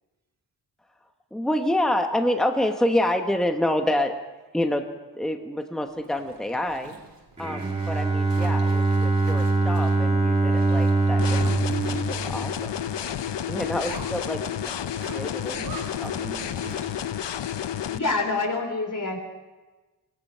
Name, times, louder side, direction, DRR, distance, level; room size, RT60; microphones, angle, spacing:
voice 1, 1.3-4.1 4.5-4.8 5.1-6.9 7.4-11.4 12.1-12.7 13.5-14.7 15.1-15.6 16.0-16.1, left 1 dB, ahead, 5 dB, 1.0 m, -27 dB
Zipper (clothing), 5.9-17.1, right 3 dB, 90° right, 3.8 m, -45 dB
Bowed string instrument, 7.4-13.3, right 3 dB, 15° right, 2.1 m, -23 dB
sound 1, 11.2-18.0, left 10 dB, 90° left, 0.7 m, -31 dB
voice 2, 15.4-17.1, right 4 dB, 40° right, 4 dB, 1.8 m, -43 dB
voice 3, 17.9-19.2, left 3 dB, 50° left, 4 dB, 3.9 m, -26 dB
26.5 x 18.5 x 5.6 m, 1.2 s
wide cardioid pair, 140°, 41 cm